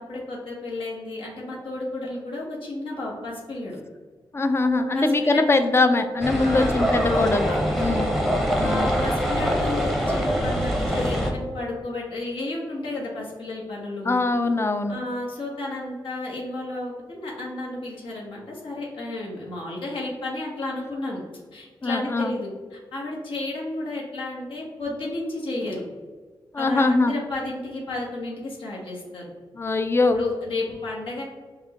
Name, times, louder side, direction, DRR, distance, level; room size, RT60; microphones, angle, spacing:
voice 1, 0.0-3.8 4.9-5.6 6.4-6.7 7.0-7.9 8.6-14.1 14.9-21.2 21.5-25.9 26.6-29.2 30.1-31.2, left 2 dB, 75° left, -4 dB, 1.0 m, -32 dB
voice 2, 4.3-7.5 7.8-8.1 8.6-8.9 14.1-14.9 21.8-22.3 26.5-27.1 29.6-30.2, left 3 dB, 30° left, 8 dB, 0.4 m, -22 dB
Wind instrument woodwind instrument, 4.6-11.9, equal, 80° right, 0.6 m, -36 dB
sound 1, 6.2-11.3, equal, ahead, 0.7 m, -24 dB
5.9 x 2.1 x 2.8 m, 1.5 s
wide cardioid pair, 90°, 9 cm